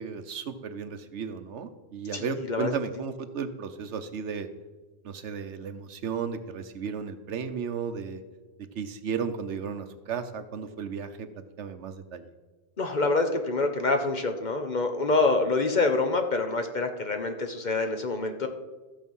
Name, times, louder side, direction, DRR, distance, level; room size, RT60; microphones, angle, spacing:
voice 1, 0.0-4.5 5.0-8.2 8.6-12.3, right 6 dB, 75° right, 10 dB, 1.1 m, -34 dB
voice 2, 2.1-2.7 12.8-18.5, left 3 dB, 45° left, 6 dB, 1.0 m, -26 dB
14.0 x 7.1 x 5.5 m, 1.2 s
omnidirectional pair, 1.2 m